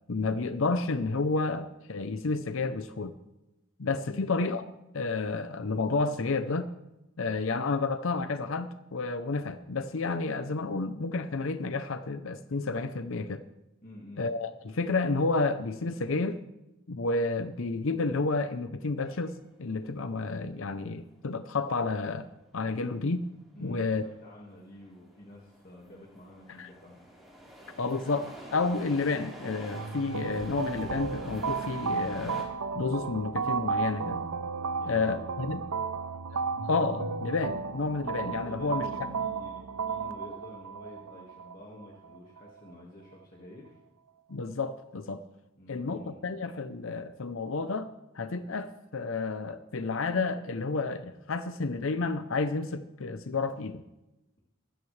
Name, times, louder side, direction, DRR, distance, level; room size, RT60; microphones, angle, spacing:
voice 1, 0.1-3.1 3.8-4.6 4.9-6.7 7.2-13.4 14.2-16.4 16.9-22.3 22.5-23.3 23.6-24.1 26.6-26.7 27.8-32.5 32.8-34.2 34.9-35.6 36.3-38.9 44.3-45.2 45.7-47.9 48.2-53.8, left 3 dB, 65° left, 10 dB, 0.7 m, -30 dB
voice 2, 13.8-14.3 23.5-27.0 34.8-35.2 38.4-43.8 45.6-46.3, left 1 dB, 40° left, -3 dB, 1.9 m, -49 dB
sound 1, 19.0-32.4, equal, ahead, 3.9 m, -48 dB
sound 2, 29.7-42.7, right 5 dB, 80° right, 0.7 m, -34 dB
23.0 x 13.5 x 3.3 m, 0.98 s
head